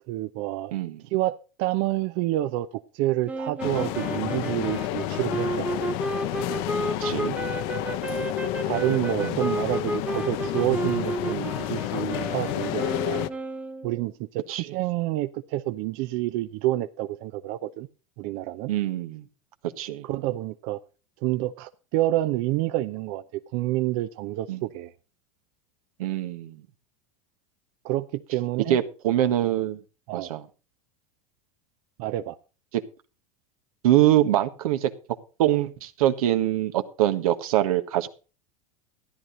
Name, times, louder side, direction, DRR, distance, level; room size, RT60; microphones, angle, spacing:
voice 1, 0.1-0.7 1.1-5.9 8.1-8.2 8.6-13.2 13.8-17.9 18.2-18.7 20.0-20.8 21.2-24.9 27.8-28.8 30.1-30.3 32.0-32.4, right 15 dB, 55° right, 0.7 m, -28 dB
voice 2, 0.7-1.0 7.0-7.4 9.2-9.4 14.5-14.7 18.7-19.2 19.8-20.1 24.5-24.6 26.0-26.6 28.7-29.8 30.1-30.4 32.7-32.8 33.8-34.9 35.4-38.1, right 13 dB, 80° right, 1.4 m, -24 dB
sound 1, 3.3-14.0, right 2 dB, 5° right, 0.9 m, -32 dB
sound 2, 3.6-13.3, left 15 dB, 55° left, 0.9 m, -30 dB
14.0 x 10.5 x 3.9 m
supercardioid pair, 125°, 18 cm